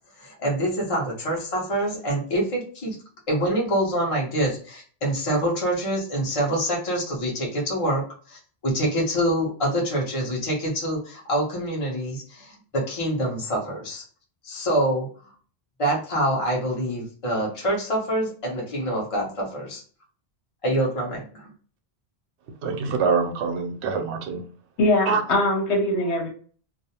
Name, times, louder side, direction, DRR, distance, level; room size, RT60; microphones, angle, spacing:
voice 1, 0.2-3.0 3.3-14.0 14.4-15.1 15.8-19.8 20.6-21.5, right 1 dB, 35° left, -3 dB, 0.8 m, -26 dB
voice 2, 22.6-24.4 25.1-25.2, right 5 dB, 90° right, 5 dB, 0.9 m, -25 dB
voice 3, 24.8-26.3, left 1 dB, 80° left, 1 dB, 1.0 m, -22 dB
2.5 x 2.1 x 2.8 m, 0.43 s
omnidirectional pair, 1.1 m